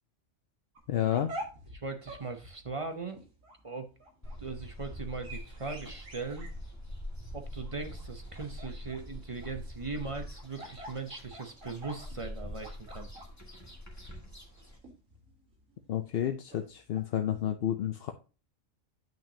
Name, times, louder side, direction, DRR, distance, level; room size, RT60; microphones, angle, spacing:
sound 1, 0.8-17.4, right 1 dB, 85° right, 2.2 m, -48 dB
voice 1, 0.9-1.3 15.9-18.1, left 10 dB, 60° left, 7 dB, 0.7 m, -30 dB
voice 2, 1.7-3.2 3.6-3.9 4.4-6.5 7.3-13.1, right 4 dB, 30° right, 6 dB, 0.6 m, -39 dB
sound 2, 4.2-14.8, left 1 dB, 15° left, 1.9 m, -44 dB
8.9 x 5.9 x 2.8 m, 0.34 s
omnidirectional pair, 1.3 m